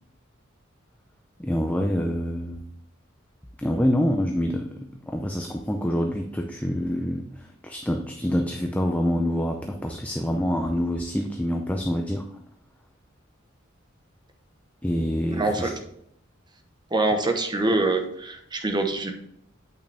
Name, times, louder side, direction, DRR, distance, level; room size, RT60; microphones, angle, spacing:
voice 1, 1.4-2.6 3.6-12.3 14.8-15.7, equal, 5° left, 2 dB, 0.5 m, -26 dB
voice 2, 15.3-15.7 16.9-19.1, right 2 dB, 20° right, 5 dB, 1.0 m, -24 dB
8.9 x 5.7 x 3.4 m, 0.71 s
head